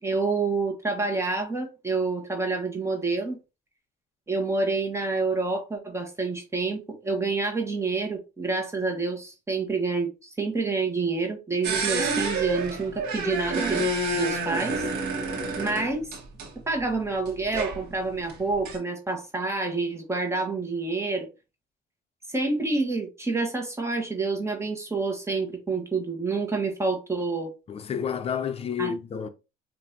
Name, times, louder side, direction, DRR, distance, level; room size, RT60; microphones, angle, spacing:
voice 1, 0.0-3.4 4.3-13.8 14.1-14.8 15.6-16.1 16.7-21.3 22.3-27.5 28.8-28.9, right 3 dB, 15° right, 1.2 m, -28 dB
sound 1, 11.6-16.5 16.9-17.0 17.2-18.8, right 2 dB, 85° right, 1.4 m, -28 dB
voice 2, 27.7-29.3, left 7 dB, 35° left, 0.6 m, -30 dB
5.4 x 2.6 x 2.7 m
cardioid pair, 110°, 17 cm